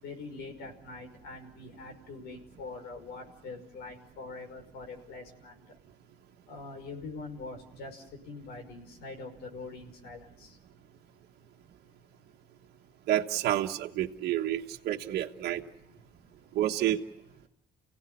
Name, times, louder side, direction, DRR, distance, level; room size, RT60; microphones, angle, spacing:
voice 1, 0.0-5.6 6.5-10.5, left 3 dB, 75° left, 4 dB, 5.8 m, -44 dB
voice 2, 13.1-15.6 16.5-17.0, right 13 dB, 70° right, 1 dB, 1.4 m, -29 dB
30.0 x 17.0 x 9.7 m, 0.87 s
cardioid pair, 110°, 17 cm